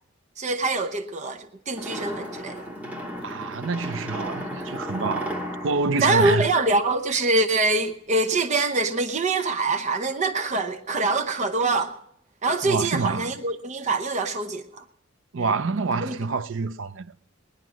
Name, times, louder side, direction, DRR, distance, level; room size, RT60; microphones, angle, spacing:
voice 1, 0.4-2.6 6.0-11.9 12.4-14.8 15.4-15.5 16.0-16.1, right 2 dB, 35° right, 0.8 m, -24 dB
sound 1, 1.7-7.1, equal, 10° right, 2.1 m, -35 dB
voice 2, 3.2-5.4 5.6-6.5 12.6-13.3 15.3-17.1, right 4 dB, 70° right, 0.6 m, -27 dB
20.5 x 10.5 x 6.2 m
head